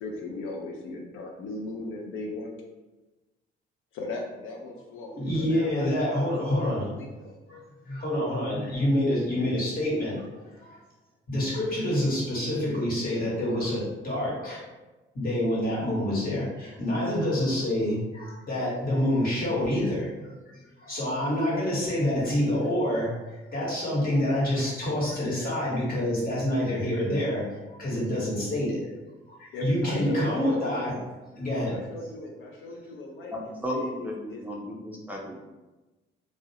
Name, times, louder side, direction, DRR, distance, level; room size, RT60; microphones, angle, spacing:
voice 1, 0.0-2.6 3.9-7.4 29.5-30.8 31.6-34.4, left 2 dB, 85° left, 1 dB, 0.4 m, -38 dB
voice 2, 5.1-6.9 7.5-7.6 7.8-10.8 11.3-14.6 15.1-20.3 20.5-27.4 27.8-28.8 29.3-30.9 31.3-31.9, left 1 dB, 45° left, -6 dB, 1.2 m, -27 dB
voice 3, 33.3-35.4, equal, 10° right, -3 dB, 0.4 m, -34 dB
2.3 x 2.0 x 2.7 m, 1.1 s
cardioid pair, 90°, 20 cm